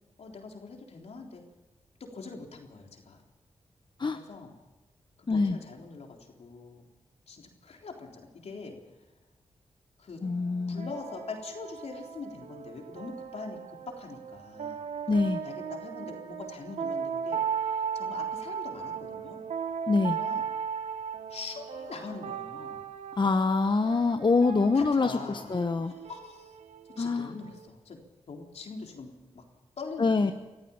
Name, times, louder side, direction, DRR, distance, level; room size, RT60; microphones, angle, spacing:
voice 1, 0.2-1.4 2.0-3.2 4.1-4.6 5.3-6.8 7.3-9.0 10.0-10.2 10.7-14.8 15.4-19.4 20.1-20.5 21.3-22.8 24.7-25.5 25.8-26.6 27.0-28.0 28.3-29.4 29.8-30.3, left 4 dB, 75° left, 1 dB, 3.8 m, -43 dB
voice 2, 5.3-5.6 10.2-10.9 15.1-15.4 19.9-20.2 23.1-25.9 27.0-27.3 30.0-30.3, left 3 dB, 45° left, 7 dB, 1.1 m, -25 dB
sound 1, 10.2-27.7, right 7 dB, 80° right, 1.2 m, -37 dB
25.0 x 14.5 x 7.3 m, 1.1 s
cardioid pair, 50°, 11 cm